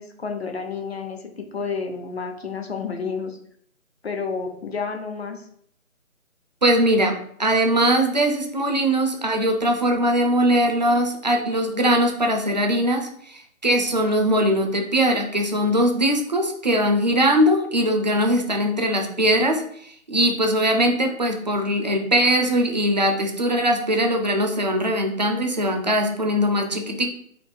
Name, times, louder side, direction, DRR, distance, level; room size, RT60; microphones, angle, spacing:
voice 1, 0.0-3.4 4.0-5.5, left 5 dB, 50° left, 5 dB, 0.8 m, -30 dB
voice 2, 6.6-27.1, equal, 30° right, 3 dB, 0.6 m, -21 dB
4.3 x 2.8 x 4.4 m, 0.65 s
figure-of-eight pair, 160°, 41 cm